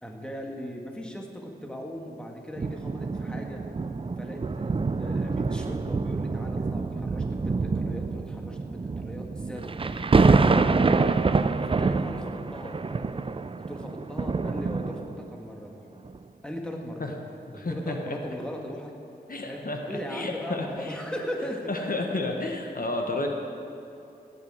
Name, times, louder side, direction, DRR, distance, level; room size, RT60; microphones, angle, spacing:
voice 1, 0.0-3.6 4.2-9.8 10.2-11.2 11.7-13.1 13.7-15.8 16.4-17.1 17.5-18.9 19.4-21.9, equal, 5° left, 1 dB, 1.6 m, -38 dB
sound 1, 2.6-15.4 16.0-16.2, right 4 dB, 30° right, 0.4 m, -26 dB
voice 2, 17.5-18.2 19.3-21.0 21.7-23.3, left 2 dB, 55° left, 2 dB, 1.2 m, -31 dB
16.5 x 9.9 x 4.8 m, 2.7 s
wide cardioid pair, 80°, 18 cm